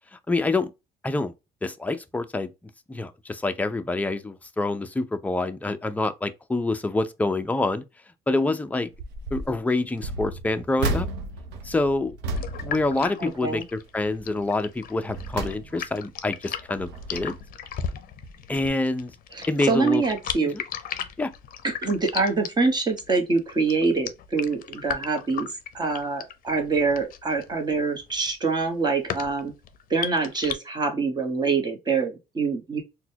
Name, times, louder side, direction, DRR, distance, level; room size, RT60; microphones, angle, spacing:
voice 1, 0.3-0.7 1.0-1.3 1.6-2.5 2.9-7.8 8.3-8.9 9.3-11.1 11.6-12.2 12.6-17.4 18.5-19.1 19.5-20.0 20.4-20.6 21.2-21.3, left 2 dB, 10° left, 0.4 m, -26 dB
sound 1, 8.9-9.5 10.0-13.7 14.0-14.3 14.8-16.1 16.6-17.6 18.2-18.4 18.6-18.7, right 2 dB, 90° right, 0.7 m, -33 dB
sound 2, 12.4-30.5, left 8 dB, 55° left, 0.5 m, -36 dB
voice 2, 13.2-13.6 19.3-20.5 21.8-25.5 25.7-29.5 29.9-32.8, right 4 dB, 25° right, 1.1 m, -25 dB
3.9 x 2.2 x 2.7 m
cardioid pair, 110°, 17 cm